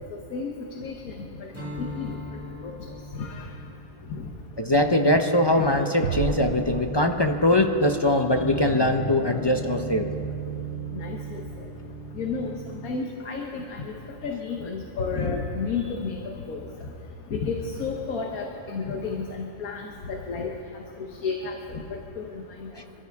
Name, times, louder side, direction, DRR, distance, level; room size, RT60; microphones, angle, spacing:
voice 1, 0.7-1.1 1.6-2.2 2.6-2.7 3.2-3.5 10.9-11.4 12.1-12.5 12.8-13.9 14.2-16.2 16.5-16.7 17.3-20.5 21.2-22.7, left 4 dB, 80° left, 1 dB, 1.6 m, -31 dB
Strum, 1.5-6.2, left 1 dB, 10° right, 1.8 m, -42 dB
voice 2, 4.6-10.1, left 1 dB, 35° left, 5 dB, 0.4 m, -22 dB
sound 1, 5.5-13.0, right 4 dB, 20° left, 2.0 m, -36 dB
sound 2, 6.0-7.8, right 6 dB, 75° right, 1.1 m, -32 dB
26.0 x 13.5 x 3.5 m, 2.7 s
omnidirectional pair, 1.5 m